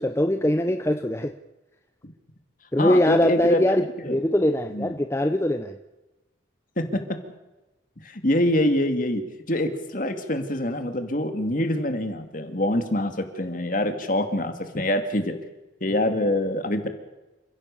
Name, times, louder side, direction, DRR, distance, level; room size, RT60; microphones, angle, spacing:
voice 1, 0.0-1.3 2.7-5.8, left 1 dB, 15° left, 8 dB, 0.7 m, -22 dB
voice 2, 2.8-3.6 4.0-4.2 4.7-5.0 6.8-7.2 8.0-9.2 9.5-15.4 15.8-16.9, left 1 dB, 45° left, 7 dB, 2.5 m, -25 dB
28.5 x 16.0 x 7.0 m, 1.1 s
head